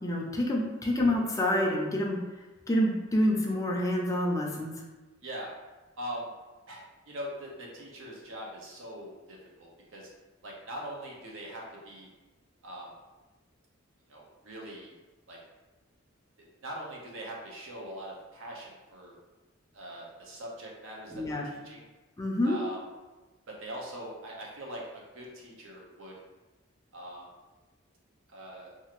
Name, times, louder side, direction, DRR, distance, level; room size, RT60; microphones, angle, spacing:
voice 1, 0.0-2.2 2.7-4.7 21.1-21.5 22.2-22.6, left 1 dB, 15° left, -1 dB, 0.4 m, -27 dB
voice 2, 5.2-5.5 6.0-6.3 6.7-10.1 10.4-12.1 12.6-12.9 14.1-14.9 15.3-15.4 16.6-19.1 19.7-21.9 22.4-22.8 23.5-26.1 26.9-27.3 28.3-28.7, right 1 dB, 70° right, -2 dB, 0.7 m, -42 dB
2.8 x 2.4 x 2.9 m, 1.2 s
head